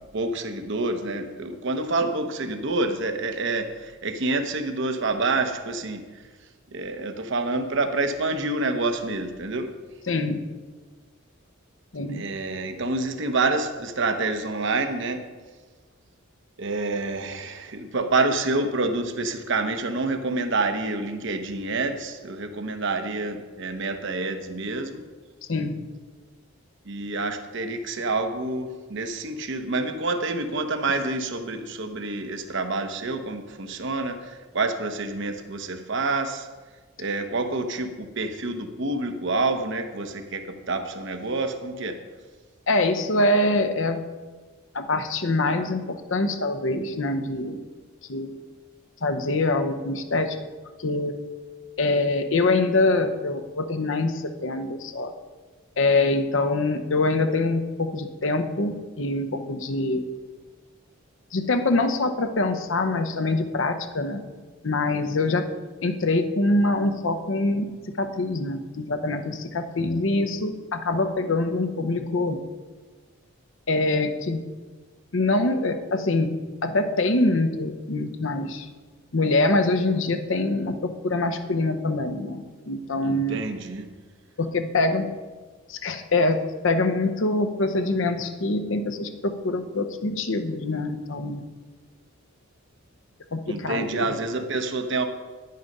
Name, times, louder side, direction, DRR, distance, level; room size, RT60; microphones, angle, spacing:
voice 1, 0.1-6.0 6.7-9.7 12.1-15.3 16.6-25.0 26.8-36.5 37.0-42.0 83.0-83.9 93.5-95.1, right 3 dB, 60° right, 7 dB, 0.9 m, -27 dB
voice 2, 10.1-10.4 11.9-12.2 25.5-25.9 42.7-44.0 44.7-47.6 48.1-48.3 49.0-50.4 50.8-51.2 51.8-55.1 55.8-60.1 61.3-64.2 64.6-65.5 65.8-72.4 73.7-74.4 75.1-78.7 79.1-83.4 84.4-85.1 85.7-91.4 93.3-94.1, left 2 dB, 65° left, 8 dB, 0.8 m, -24 dB
10.5 x 9.5 x 5.4 m, 1.4 s
head